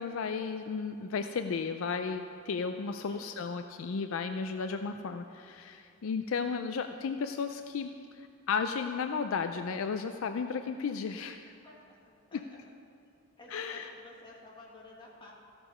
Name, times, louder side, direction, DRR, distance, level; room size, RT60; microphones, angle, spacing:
voice 1, 0.0-7.9 8.2-11.5 13.5-13.9, left 5 dB, 65° left, 7 dB, 0.4 m, -34 dB
voice 2, 3.1-3.6 11.6-12.6 13.4-15.3, left 2 dB, 25° left, -3 dB, 1.7 m, -53 dB
14.0 x 6.7 x 5.5 m, 2.4 s
head